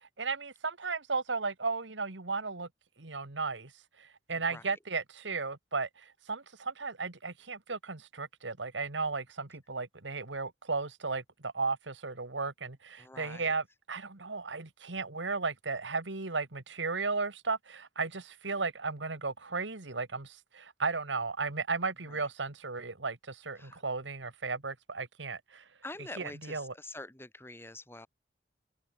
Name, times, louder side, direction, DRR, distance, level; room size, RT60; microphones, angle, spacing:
voice 1, 0.2-2.7 3.0-3.7 4.0-25.6 26.2-26.7, right 4 dB, 90° right, 2.0 m, -35 dB
voice 2, 13.0-13.5 23.6-23.8 25.8-28.1, left 2 dB, 15° left, 6.3 m, -45 dB
head